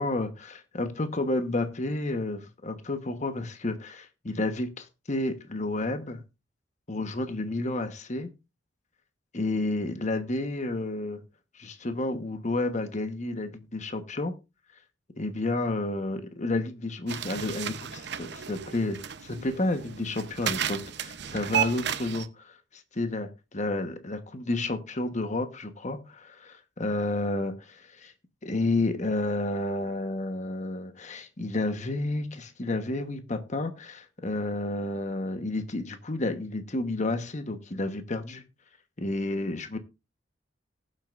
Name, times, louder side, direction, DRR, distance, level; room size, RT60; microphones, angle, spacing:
voice 1, 0.0-6.2 6.9-8.3 9.3-11.2 11.5-14.3 15.2-28.1 28.4-38.4 39.0-39.8, left 2 dB, 40° left, 1.1 m, -31 dB
sound 1, 17.1-22.3, right 9 dB, 60° right, 0.7 m, -33 dB
19.0 x 7.7 x 2.5 m
head